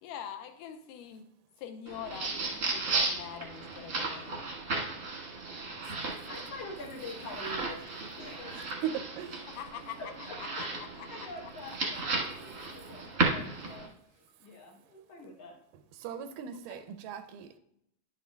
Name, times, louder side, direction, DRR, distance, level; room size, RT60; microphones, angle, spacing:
voice 1, 0.0-1.3 1.6-4.5 9.5-11.3 16.7-16.8, left 9 dB, 85° left, 2.2 m, -44 dB
sound 1, 1.9-13.9, right 3 dB, 50° right, 1.2 m, -35 dB
voice 2, 5.7-7.9 8.2-8.8 10.0-10.4 11.1-15.6, left 2 dB, 65° left, 1.6 m, -46 dB
voice 3, 8.5-9.5 16.0-17.6, right 9 dB, 85° right, 2.2 m, -38 dB
10.5 x 7.3 x 2.2 m
omnidirectional pair, 3.8 m